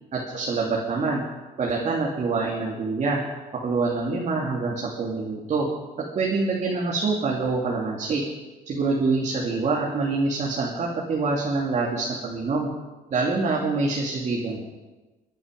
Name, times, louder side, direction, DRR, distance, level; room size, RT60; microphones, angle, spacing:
voice 1, 0.1-1.2 1.6-3.2 3.6-5.7 6.1-8.2 8.7-12.7 13.1-14.6, right 3 dB, 45° right, -3 dB, 2.7 m, -25 dB
24.0 x 9.9 x 5.3 m, 1.2 s
cardioid pair, 110°, 17 cm